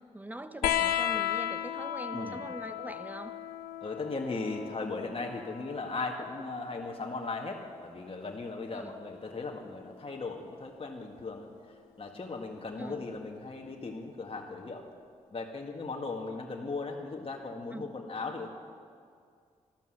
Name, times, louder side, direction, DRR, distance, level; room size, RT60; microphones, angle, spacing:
voice 1, 0.1-3.3 8.7-9.0 12.8-13.0 17.7-17.9, right 1 dB, 10° right, 10 dB, 1.2 m, -42 dB
sound 1, 0.6-7.7 9.1-9.9 11.2-11.3, left 11 dB, 90° left, 0.6 m, -35 dB
voice 2, 3.8-14.9 15.3-18.5, left 3 dB, 40° left, 1 dB, 1.8 m, -37 dB
13.5 x 12.5 x 8.0 m, 2.2 s
supercardioid pair, 40°, 15 cm